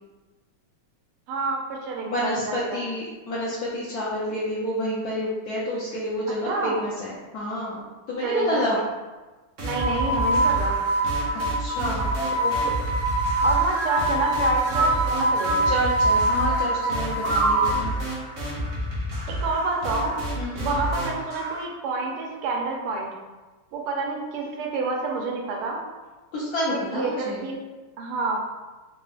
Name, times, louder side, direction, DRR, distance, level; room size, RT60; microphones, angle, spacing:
voice 1, 1.3-2.8 6.4-6.8 8.2-8.8 9.6-10.9 12.4-12.5 13.4-15.7 19.3-20.2 20.6-23.2 23.7-25.8 26.7-27.6 28.0-28.4, right 3 dB, 85° right, 0 dB, 1.6 m, -28 dB
voice 2, 2.1-7.8 8.1-8.8 11.6-12.1 15.7-17.9 20.4-20.7 26.3-27.4, left 1 dB, 80° left, -7 dB, 0.8 m, -29 dB
sound 1, 9.6-21.6, right 1 dB, 45° right, 1.1 m, -31 dB
sound 2, 9.7-17.9, right 2 dB, 65° right, 1.4 m, -24 dB
3.7 x 3.6 x 2.4 m, 1.2 s
omnidirectional pair, 2.4 m